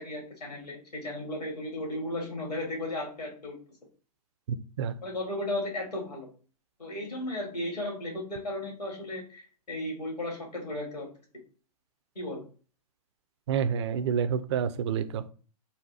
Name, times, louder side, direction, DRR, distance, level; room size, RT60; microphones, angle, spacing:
voice 1, 0.0-3.5 5.0-6.3 6.8-11.1 12.1-12.5, left 1 dB, 85° left, -1 dB, 1.6 m, -35 dB
voice 2, 4.5-4.9 13.5-15.3, right 7 dB, 45° right, 12 dB, 0.4 m, -29 dB
4.1 x 2.2 x 2.7 m, 0.38 s
figure-of-eight pair, 115°, 20 cm